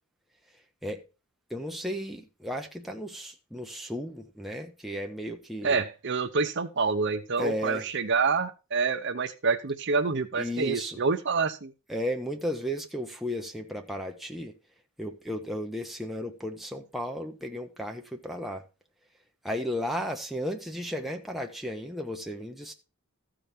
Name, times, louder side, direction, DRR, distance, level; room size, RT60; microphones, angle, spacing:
voice 1, 1.5-5.8 7.4-7.9 10.4-11.0 11.9-14.5 15.0-18.6 19.4-22.7, equal, ahead, 0.8 m, -34 dB
voice 2, 5.6-11.7, right 4 dB, 55° right, 0.7 m, -27 dB
14.0 x 5.1 x 4.3 m
head